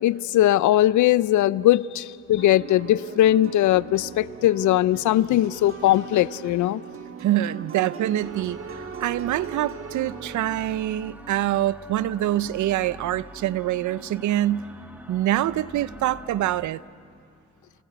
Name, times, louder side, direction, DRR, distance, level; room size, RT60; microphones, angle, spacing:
voice 1, 0.0-6.8, left 13 dB, 75° left, 0.6 m, -20 dB
sound 1, 2.4-10.5, right 6 dB, 45° right, 1.8 m, -39 dB
voice 2, 7.2-14.7 15.1-16.8, right 13 dB, 75° right, 0.6 m, -25 dB
sound 2, 8.2-16.7, equal, 5° right, 2.2 m, -44 dB
30.0 x 19.5 x 8.1 m
cardioid pair, 90°, 30 cm